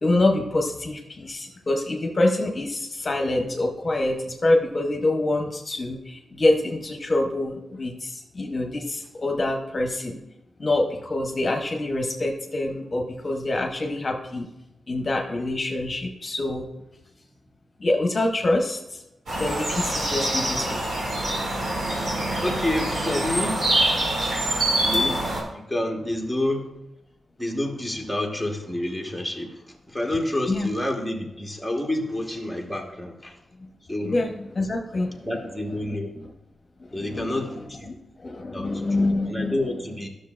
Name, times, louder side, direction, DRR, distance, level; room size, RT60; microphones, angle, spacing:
voice 1, 0.0-10.2 10.6-14.5 14.9-16.7 17.8-19.0 19.3-20.8 30.5-30.7 33.6-33.7 34.0-35.3 35.8-36.0 36.9-37.4 38.2-39.6, left 2 dB, 35° left, 2 dB, 0.9 m, -25 dB
sound 1, 19.3-25.4, right 1 dB, 65° right, 2.5 m, -25 dB
voice 2, 22.4-23.8 24.8-25.2 25.5-26.7 27.4-33.4 33.9-34.1 35.2-36.2 36.9-37.9 38.5-40.1, left 1 dB, ahead, 0 dB, 1.3 m, -29 dB
12.0 x 6.4 x 2.5 m, 0.94 s
cardioid pair, 95°, 0 cm